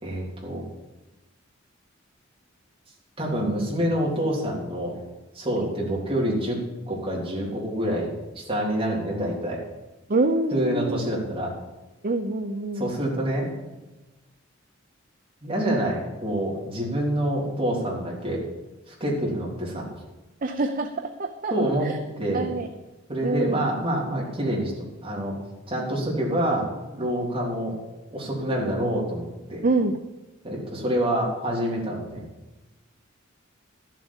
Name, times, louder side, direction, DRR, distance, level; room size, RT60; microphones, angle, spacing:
voice 1, 0.0-0.6 3.2-4.9 5.4-6.6 6.9-8.1 8.4-9.6 10.5-11.5 12.8-13.5 15.4-18.4 18.9-19.9 21.5-21.9 22.2-22.5 23.1-24.7 25.0-25.3 25.7-26.7 26.9-27.8 28.1-29.6 30.4-32.2, right 1 dB, 30° right, -4 dB, 3.7 m, -26 dB
voice 2, 10.1-11.0 12.0-12.9 20.4-21.5 21.8-21.9 22.3-22.7 23.2-23.6 29.6-30.0, right 2 dB, 45° right, 6 dB, 0.6 m, -25 dB
12.0 x 7.5 x 7.2 m, 1.1 s
head